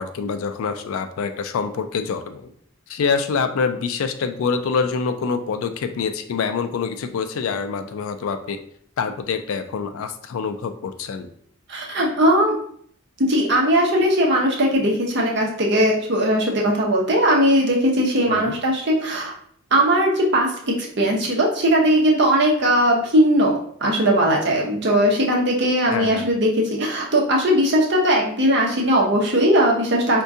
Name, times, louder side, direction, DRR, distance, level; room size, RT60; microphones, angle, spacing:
voice 1, 0.0-2.5 2.9-8.6 9.0-11.3 18.3-18.5 25.9-26.3, left 5 dB, 75° left, 8 dB, 0.3 m, -26 dB
voice 2, 11.7-12.5 13.3-19.3 19.7-23.5 23.8-30.2, equal, 50° right, -2 dB, 0.7 m, -19 dB
3.6 x 2.2 x 2.6 m, 0.62 s
head